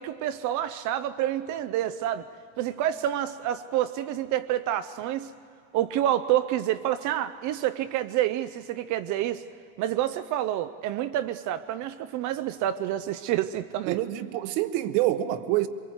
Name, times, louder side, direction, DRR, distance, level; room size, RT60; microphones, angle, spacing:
voice 1, 0.0-2.3 2.6-5.3 5.7-9.4 9.8-14.0, right 12 dB, 40° right, 0.5 m, -28 dB
voice 2, 13.9-15.7, right 14 dB, 60° right, 1.2 m, -26 dB
24.0 x 22.5 x 7.9 m
supercardioid pair, 145°, 45 cm